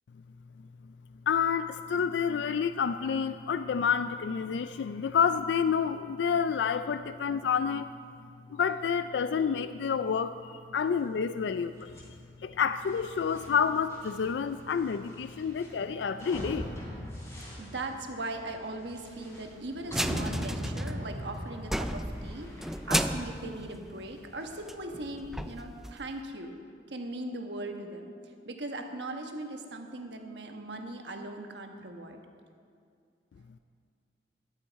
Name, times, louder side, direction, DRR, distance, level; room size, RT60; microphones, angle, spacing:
voice 1, 1.3-7.9 8.5-11.9 12.4-16.7, left 6 dB, 75° left, 12 dB, 0.3 m, -29 dB
sound 1, 11.8-25.0, equal, 15° left, 3.4 m, -41 dB
voice 2, 17.6-22.5 22.9-26.5 26.9-28.1 28.4-32.2, right 2 dB, 75° right, 4 dB, 1.3 m, -39 dB
sound 2, 19.8-21.3 21.6-24.4 24.7-24.8 25.2-26.2, right 1 dB, ahead, 0.3 m, -34 dB
14.0 x 11.5 x 4.6 m, 2.3 s
head